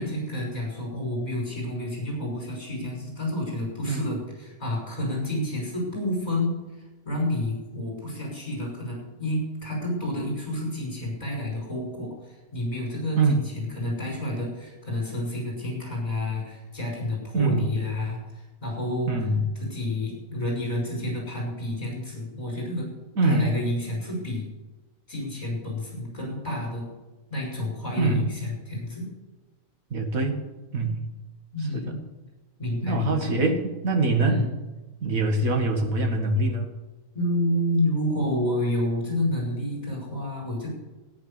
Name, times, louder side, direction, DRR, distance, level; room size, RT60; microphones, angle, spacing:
voice 1, 0.0-6.6 7.0-19.1 19.6-22.9 23.2-24.5 25.1-26.9 27.3-29.1 31.5-32.0 32.6-33.3 34.2-34.5 37.1-40.7, left 1 dB, 25° left, -2 dB, 5.7 m, -29 dB
voice 2, 17.3-17.7 19.1-19.4 23.2-23.5 28.0-28.3 29.9-30.4 30.7-31.0 31.7-31.9 32.8-34.4 35.0-36.7, right 3 dB, 65° right, 3 dB, 2.2 m, -24 dB
14.0 x 9.6 x 6.9 m, 1.1 s
omnidirectional pair, 1.6 m